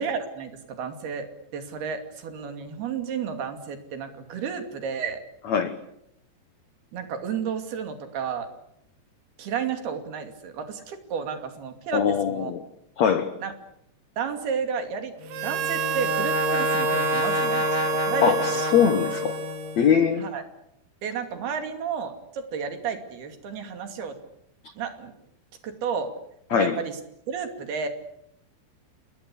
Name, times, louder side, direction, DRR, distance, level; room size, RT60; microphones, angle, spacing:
voice 1, 0.0-5.2 6.9-8.5 9.4-12.5 13.4-13.5 14.2-15.1 15.4-18.6 20.2-20.4 21.0-24.2 24.8-25.1 25.6-26.2 26.5-27.0 27.3-27.9, right 6 dB, 60° right, 7 dB, 4.4 m, -32 dB
voice 2, 11.9-12.6 13.0-13.3 18.2-19.4 19.8-20.2 24.6-24.7 26.5-26.8, left 7 dB, 80° left, 11 dB, 1.5 m, -22 dB
Brass instrument, 15.2-20.0, left 2 dB, 35° left, 0.6 m, -28 dB
Harmonica, 15.3-20.1, right 11 dB, 90° right, 1.6 m, -30 dB
28.5 x 20.5 x 8.5 m, 0.76 s
omnidirectional pair, 5.2 m